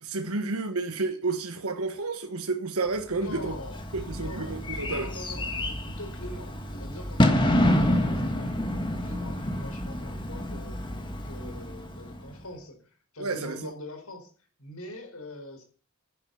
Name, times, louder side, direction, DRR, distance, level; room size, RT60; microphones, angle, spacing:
voice 1, 0.0-3.5 3.9-5.1 13.2-13.7, right 3 dB, 80° right, 1.4 m, -31 dB
voice 2, 3.1-3.8 4.1-14.3 14.6-15.6, left 1 dB, 75° left, 4.8 m, -43 dB
Bird / Fireworks, 3.2-12.4, left 1 dB, 20° left, 1.9 m, -28 dB
11.0 x 10.5 x 7.1 m
head